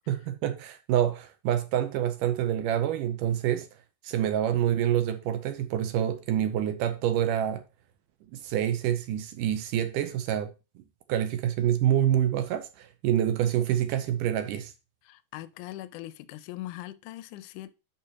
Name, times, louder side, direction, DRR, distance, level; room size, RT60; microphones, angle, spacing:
voice 1, 0.1-3.7 4.0-7.6 8.3-10.5 11.1-14.7, right 10 dB, 80° right, 2.2 m, -27 dB
voice 2, 15.1-17.7, left 15 dB, 80° left, 1.9 m, -41 dB
10.0 x 5.5 x 2.9 m
omnidirectional pair, 4.0 m